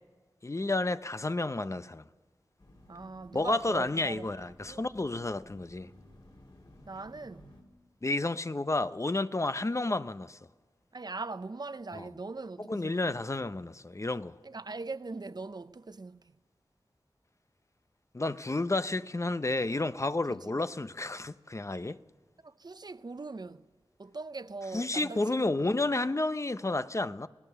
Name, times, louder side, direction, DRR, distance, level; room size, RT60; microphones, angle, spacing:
voice 1, 0.4-2.1 3.3-5.9 8.0-10.4 11.9-12.1 12.6-14.3 18.1-22.0 24.7-27.3, left 2 dB, 35° left, 0.7 m, -31 dB
sound 1, 2.6-7.6, left 1 dB, 60° left, 3.6 m, -55 dB
voice 2, 2.9-4.3 4.6-4.9 6.9-7.6 10.9-13.3 14.4-16.3 20.3-20.5 22.4-23.7 24.0-25.7, right 3 dB, 50° right, 0.7 m, -41 dB
27.5 x 18.5 x 6.9 m
wide cardioid pair, 50°, 9 cm